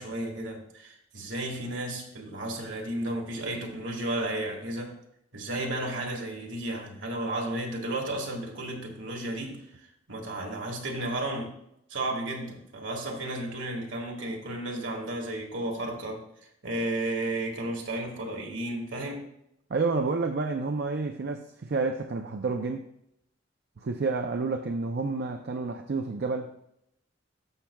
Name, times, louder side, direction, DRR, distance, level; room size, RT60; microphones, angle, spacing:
voice 1, 0.0-4.9 5.3-9.6 10.1-11.5 11.9-16.2 16.6-19.3, right 1 dB, 75° right, 1.8 m, -33 dB
voice 2, 19.7-22.9 23.8-26.5, right 3 dB, 60° right, 0.5 m, -29 dB
13.0 x 5.8 x 2.3 m
head